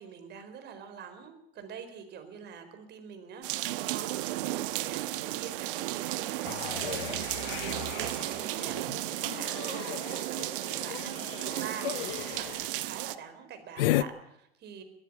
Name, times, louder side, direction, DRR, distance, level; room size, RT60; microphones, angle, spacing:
voice 1, 0.0-14.8, right 7 dB, 35° right, 8 dB, 4.6 m, -45 dB
sound 1, 3.4-13.2, right 17 dB, 65° right, 1.1 m, -34 dB
sound 2, 6.4-12.7 13.8-14.0, left 16 dB, 65° left, 0.8 m, -35 dB
21.0 x 14.0 x 8.8 m, 0.78 s
hypercardioid pair, 115°, 30 cm